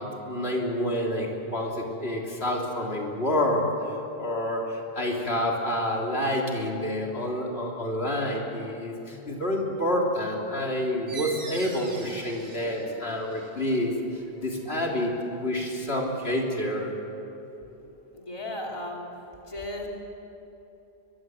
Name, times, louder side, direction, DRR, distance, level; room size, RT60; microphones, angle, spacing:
voice 1, 0.0-16.9, left 1 dB, 75° left, -1 dB, 3.6 m, -28 dB
sound 1, 11.1-16.3, right 3 dB, 80° right, 2.5 m, -45 dB
voice 2, 18.1-19.1 19.5-19.9, left 1 dB, 30° left, -1 dB, 3.1 m, -35 dB
23.5 x 22.5 x 7.9 m, 3.0 s
omnidirectional pair, 1.1 m